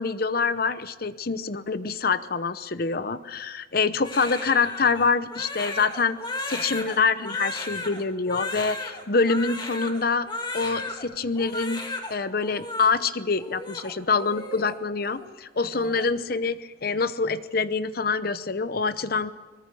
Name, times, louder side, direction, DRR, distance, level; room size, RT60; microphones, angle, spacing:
voice 1, 0.0-6.2 6.5-10.3 10.5-11.8 12.1-19.3, left 4 dB, 55° left, 13 dB, 0.8 m, -25 dB
Crying sobbing, 4.0-11.0 11.4-12.1 12.4-12.9 13.4-14.8 15.0-15.3 15.6-16.1, left 2 dB, 25° left, 2.5 m, -35 dB
23.5 x 21.0 x 7.0 m, 1.3 s
head